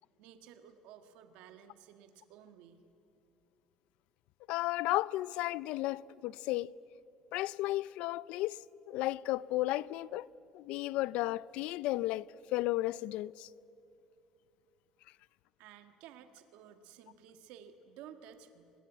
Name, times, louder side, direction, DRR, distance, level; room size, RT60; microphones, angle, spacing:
voice 1, 0.2-2.8 15.6-18.7, right 9 dB, 80° right, 1.7 m, -54 dB
voice 2, 4.5-6.7 7.3-8.6 8.9-10.3 10.5-12.3 12.5-13.5, left 17 dB, 75° left, 0.5 m, -33 dB
25.0 x 21.0 x 9.0 m
cardioid pair, 140°, 2 cm